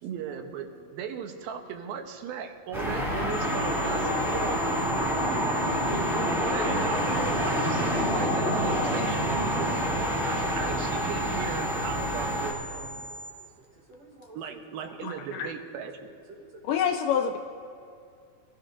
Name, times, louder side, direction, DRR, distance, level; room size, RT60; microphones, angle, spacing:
voice 1, 0.0-4.7 5.9-9.8 10.2-13.1 14.3-16.0, right 8 dB, 85° right, 5 dB, 2.8 m, -37 dB
sound 1, 2.7-12.5, equal, ahead, 2.1 m, -27 dB
Guitar, 2.9-12.3, left 3 dB, 50° left, 1.6 m, -40 dB
sound 2, 3.3-13.3, right 1 dB, 30° right, 4.1 m, -42 dB
voice 2, 13.6-14.9 15.4-15.5 16.3-16.8, right 3 dB, 60° right, 1 dB, 2.1 m, -51 dB
voice 3, 15.0-15.5 16.6-17.4, left 8 dB, 80° left, 7 dB, 2.0 m, -27 dB
24.5 x 15.0 x 2.6 m, 2.5 s
omnidirectional pair, 4.2 m